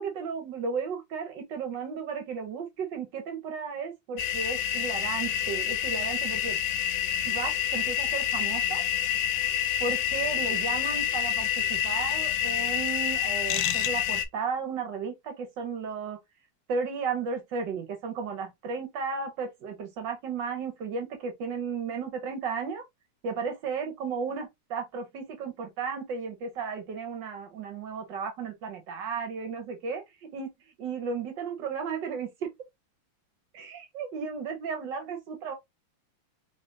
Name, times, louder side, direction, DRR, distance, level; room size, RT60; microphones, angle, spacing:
voice 1, 0.0-6.6 7.2-8.8 9.8-16.2 16.7-22.8 23.2-30.0 30.3-30.5 30.8-32.3 33.5-35.5, right 5 dB, 65° right, 1.3 m, -34 dB
sound 1, 4.2-14.3, left 10 dB, 80° left, 1.0 m, -28 dB
3.8 x 3.2 x 2.5 m
omnidirectional pair, 2.4 m